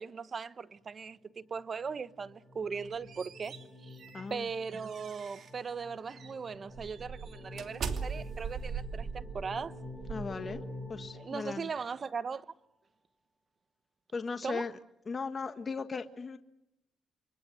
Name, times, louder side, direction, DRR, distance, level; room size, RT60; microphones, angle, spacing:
voice 1, 0.0-4.0 4.3-9.8 11.1-12.4 14.4-14.7, right 5 dB, 40° right, 1.1 m, -39 dB
sound 1, 1.6-12.3, left 1 dB, 25° right, 7.8 m, -48 dB
sound 2, 2.7-5.6 6.1-6.3 6.8-11.0, right 6 dB, 60° right, 2.8 m, -41 dB
voice 2, 4.1-4.5 10.1-10.6 10.9-11.7 14.1-14.8 15.1-16.4, left 4 dB, 35° left, 1.6 m, -37 dB
29.0 x 24.5 x 7.9 m
cardioid pair, 90°, 0 cm